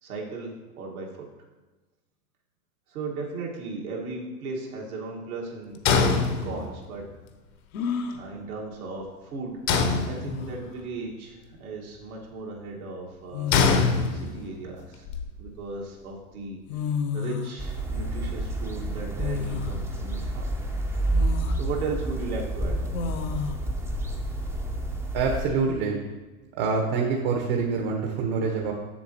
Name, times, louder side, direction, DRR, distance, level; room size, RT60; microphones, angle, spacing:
voice 1, 0.0-1.3 2.9-7.1 8.1-9.6 10.0-13.5 14.1-15.0 15.4-16.6 17.1-20.5 21.6-22.9, right 3 dB, 75° right, -2 dB, 1.8 m, -36 dB
sound 1, 5.9-6.9 9.7-10.7 13.5-14.6, left 5 dB, 40° left, 0.8 m, -23 dB
sound 2, 6.1-6.2 7.7-8.2 9.7-9.8 10.2-10.7 12.0-12.2 13.3-14.1 14.7-15.8 16.4-16.5 16.7-17.6 19.2-19.8 20.3-20.4 21.1-21.6 22.9-23.6, left 6 dB, 70° left, 0.9 m, -31 dB
sound 3, 17.6-25.5, right 1 dB, 5° right, 0.6 m, -29 dB
voice 2, 25.1-26.0 26.6-28.7, right 4 dB, 50° right, 1 dB, 1.2 m, -26 dB
7.4 x 7.1 x 2.9 m, 1.2 s
hypercardioid pair, 100°, 44 cm